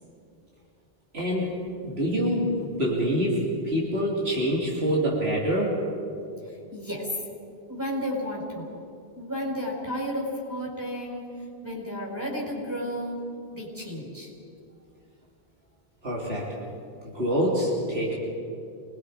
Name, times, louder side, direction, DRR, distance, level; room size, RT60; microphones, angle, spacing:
voice 1, 1.1-5.8 16.0-16.5 17.0-18.2, equal, 80° right, -5 dB, 3.3 m, -26 dB
voice 2, 6.7-7.1 7.7-8.7 9.1-11.3 11.6-13.2 13.5-14.3, equal, 20° right, -2 dB, 4.7 m, -32 dB
26.5 x 20.5 x 5.0 m, 2.6 s
omnidirectional pair, 1.0 m